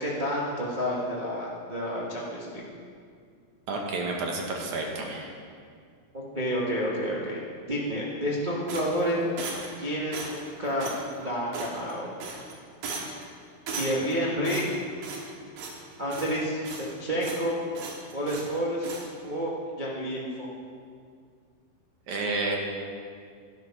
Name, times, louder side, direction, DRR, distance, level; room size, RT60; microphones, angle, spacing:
voice 1, 0.0-2.6 6.1-7.4 7.7-9.2 9.8-10.9 11.1-12.1 13.7-14.6 16.0-17.6 18.1-18.9 19.2-19.5 19.8-20.5, equal, 40° right, -6 dB, 0.6 m, -29 dB
voice 2, 3.7-5.3 22.1-22.6, right 3 dB, 65° right, 0 dB, 2.7 m, -30 dB
sound 1, 8.7-9.8 10.1-10.5 10.8-11.0 11.5-11.9 12.2-12.5 12.8-13.2 13.7-14.1 14.4-15.3 15.6-15.8 16.1-16.9 17.2-17.5 17.7-18.5 18.8-19.1, right 4 dB, 80° right, 3.2 m, -37 dB
12.0 x 11.5 x 5.8 m, 2.2 s
omnidirectional pair, 3.9 m